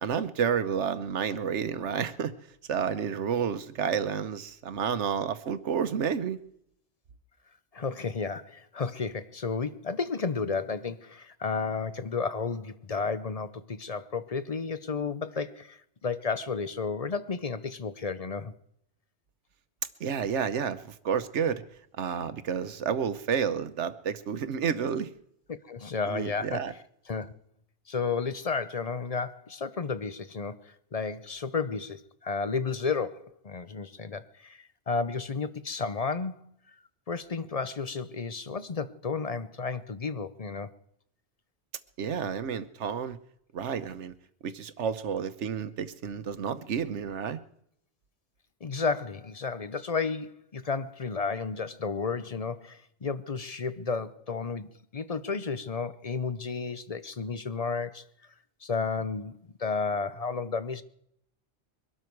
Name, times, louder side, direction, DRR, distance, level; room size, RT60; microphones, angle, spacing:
voice 1, 0.0-2.3 2.7-6.4 20.0-20.8 21.0-21.6 22.0-25.1 26.1-26.7 42.0-43.2 43.5-44.1 44.4-47.4, right 7 dB, 75° right, 1.2 m, -30 dB
voice 2, 7.7-18.5 25.6-27.3 27.9-36.5 37.1-40.7 48.6-58.1 58.6-60.8, left 4 dB, 40° left, 0.7 m, -32 dB
23.5 x 12.5 x 4.6 m
omnidirectional pair, 1.2 m